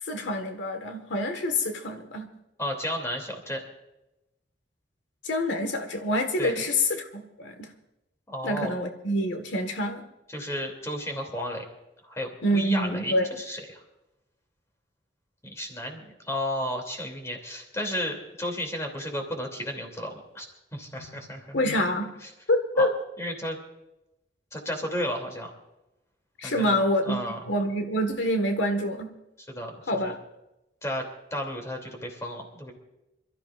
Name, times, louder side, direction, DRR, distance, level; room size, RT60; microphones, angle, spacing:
voice 1, 0.0-2.3 5.2-7.7 8.4-10.0 12.4-13.3 21.0-21.1 21.5-22.1 22.5-22.9 26.4-27.2 27.5-29.1 29.9-30.1, left 1 dB, 90° left, 6 dB, 1.6 m, -26 dB
voice 2, 2.6-3.6 6.4-6.5 8.3-8.7 10.3-11.6 12.1-13.8 15.4-20.5 20.7-21.6 22.8-22.9 23.2-23.6 24.5-25.5 26.4-27.4 29.5-30.1 30.8-31.0 31.3-32.7, left 1 dB, 15° left, 2 dB, 2.8 m, -33 dB
27.0 x 13.5 x 2.5 m, 0.92 s
head